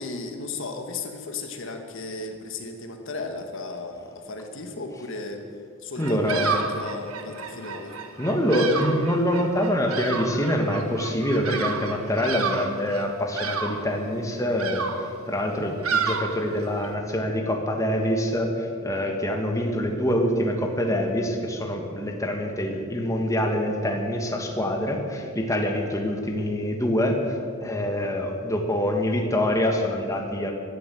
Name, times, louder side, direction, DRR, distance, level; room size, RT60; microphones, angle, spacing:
voice 1, 0.0-5.5 5.8-8.0, left 3 dB, 60° left, 5 dB, 1.6 m, -35 dB
voice 2, 6.0-6.7 8.2-30.5, equal, 15° left, 2 dB, 1.6 m, -25 dB
Bird vocalization bird call bird song, 6.0-16.9, right 5 dB, 80° right, 1.5 m, -31 dB
16.0 x 12.0 x 7.7 m, 2.3 s
head